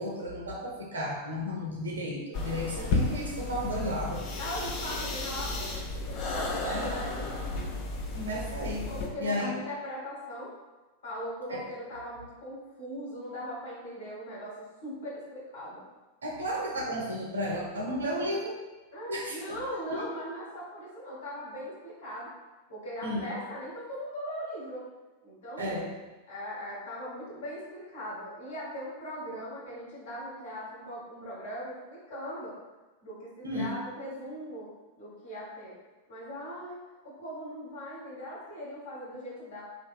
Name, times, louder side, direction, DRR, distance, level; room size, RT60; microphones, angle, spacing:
voice 1, 0.0-4.2 6.6-7.0 8.1-8.9 9.2-9.6 11.5-11.7 16.2-18.6 19.1-19.6 19.9-20.0 23.0-23.3 25.6-25.9 33.4-33.7, equal, 70° right, -2 dB, 0.7 m, -33 dB
sound 1, 2.3-9.1, left 2 dB, 40° left, 0.4 m, -33 dB
voice 2, 4.4-7.3 8.8-10.5 11.0-15.8 18.9-22.3 22.7-24.9 25.2-25.9 26.3-32.5 33.0-34.7 34.9-35.8 36.1-39.6, equal, 60° left, -6 dB, 1.2 m, -40 dB
2.9 x 2.7 x 2.3 m, 1.2 s
figure-of-eight pair, 90°, 0 cm